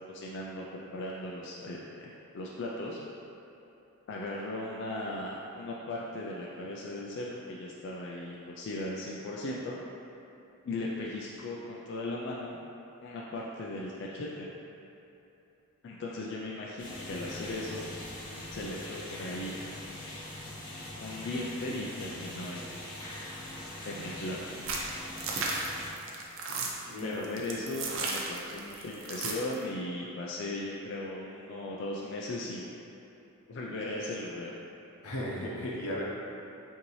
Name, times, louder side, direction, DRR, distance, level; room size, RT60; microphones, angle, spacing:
voice 1, 0.1-3.0 4.1-9.8 10.6-12.6 13.0-14.6 15.8-17.9 18.5-19.7 21.0-22.7 23.8-24.6 27.0-32.7 33.5-34.5, left 2 dB, 55° left, -4 dB, 0.3 m, -37 dB
sound 1, 16.8-25.9, left 1 dB, 20° left, 0.9 m, -42 dB
sound 2, 24.6-29.5, right 3 dB, 60° right, 0.5 m, -34 dB
voice 2, 26.5-27.2 35.0-36.0, equal, 90° left, -4 dB, 0.8 m, -36 dB
5.6 x 2.7 x 3.1 m, 2.9 s
head